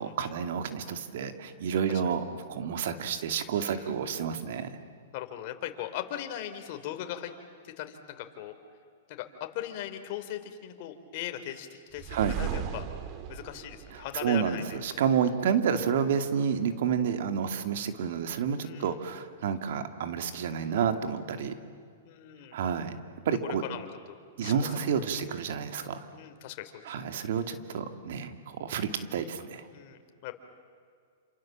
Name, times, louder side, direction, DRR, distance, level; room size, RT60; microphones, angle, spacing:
voice 1, 0.0-4.7 12.1-12.4 13.9-21.6 22.5-23.0 23.2-23.6 24.4-26.1 26.8-29.7, right 7 dB, 65° right, 8 dB, 2.4 m, -30 dB
voice 2, 5.1-7.3 7.6-8.6 9.1-12.9 13.3-14.8 18.6-18.9 22.0-22.6 23.4-24.7 26.1-26.9 29.7-30.3, left 11 dB, 50° left, 6 dB, 3.3 m, -39 dB
sound 1, 11.9-14.9, right 9 dB, 40° right, 2.2 m, -37 dB
28.5 x 27.5 x 7.5 m, 2.2 s
hypercardioid pair, 135°, 0 cm